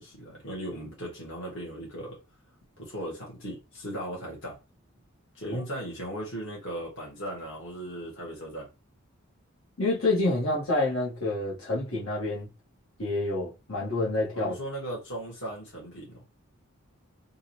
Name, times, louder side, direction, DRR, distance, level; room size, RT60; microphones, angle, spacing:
voice 1, 0.0-2.2 2.8-4.6 5.3-8.7 14.3-16.2, right 1 dB, 60° left, 1.7 m, -37 dB
voice 2, 9.8-12.5 13.0-14.5, left 2 dB, 80° left, 1.6 m, -28 dB
3.7 x 2.6 x 3.0 m
head